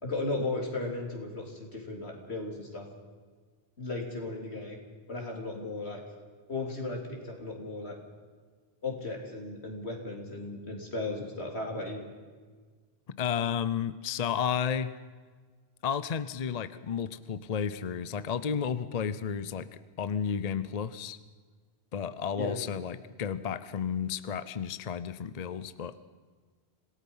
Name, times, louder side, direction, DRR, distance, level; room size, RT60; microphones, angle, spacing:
voice 1, 0.0-2.9 3.8-4.8 5.1-6.0 6.5-8.0 8.8-12.0 22.4-22.6, left 2 dB, 85° left, 1 dB, 3.7 m, -35 dB
voice 2, 13.2-14.9 15.8-21.2 21.9-26.0, left 7 dB, 45° left, 14 dB, 0.7 m, -32 dB
26.5 x 17.5 x 5.6 m, 1.5 s
omnidirectional pair, 1.1 m